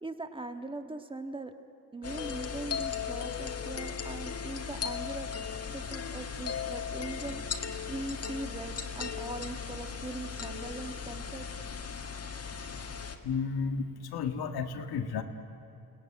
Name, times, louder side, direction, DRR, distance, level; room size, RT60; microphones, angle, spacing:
voice 1, 0.0-1.5 1.9-5.3 5.7-7.4 7.9-11.5, right 2 dB, 15° right, 7 dB, 1.7 m, -40 dB
sound 1, 2.0-13.2, left 6 dB, 40° left, 1.8 m, -37 dB
voice 2, 13.2-15.2, left 5 dB, 90° left, 6 dB, 2.0 m, -32 dB
29.5 x 18.0 x 9.9 m, 2.8 s
cardioid pair, 110°, 37 cm